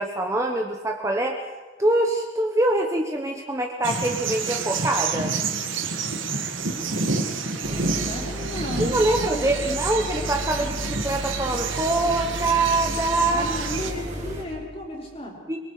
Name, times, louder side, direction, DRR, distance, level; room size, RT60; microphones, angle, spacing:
voice 1, 0.0-1.4 1.8-5.3 8.8-13.4 15.5-15.6, right 2 dB, 15° right, 3 dB, 1.2 m, -24 dB
sound 1, 3.8-13.9, right 4 dB, 75° right, 2.0 m, -29 dB
sound 2, 7.6-14.4, left 1 dB, 35° right, 4.7 m, -33 dB
voice 2, 7.7-9.9 13.3-15.4, equal, 30° left, -1 dB, 4.3 m, -34 dB
25.0 x 23.0 x 5.0 m, 1.3 s
head